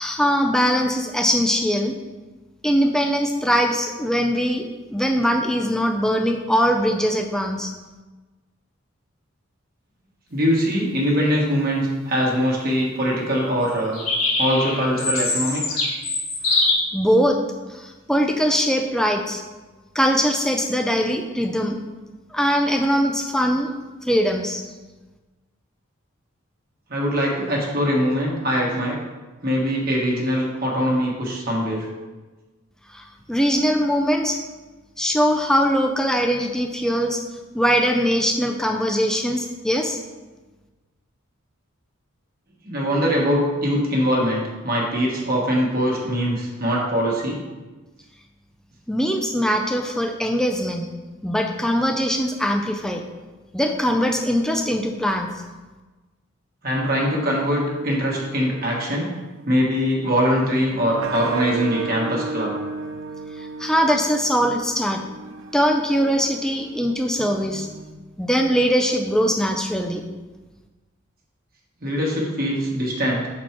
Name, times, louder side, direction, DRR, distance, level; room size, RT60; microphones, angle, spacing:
voice 1, 0.0-1.9 2.6-4.6 4.9-7.7 16.5-16.7 16.9-17.4 17.7-19.4 19.9-21.8 22.3-23.7 24.0-24.6 32.9-34.4 35.0-37.2 37.5-40.0 48.9-50.9 51.2-53.0 53.5-55.4 63.4-65.0 65.5-67.7 68.2-70.0, equal, 5° left, 3 dB, 0.4 m, -21 dB
voice 2, 10.3-14.0 14.4-15.8 26.9-29.0 29.4-31.8 42.6-47.4 56.6-59.1 59.4-62.5 71.8-73.3, equal, 45° right, -3 dB, 1.3 m, -22 dB
sound 1, 13.9-16.7, left 3 dB, 75° left, 2.0 m, -23 dB
sound 2, 56.8-67.9, right 3 dB, 70° right, 0.5 m, -35 dB
6.1 x 4.3 x 4.5 m, 1.2 s
head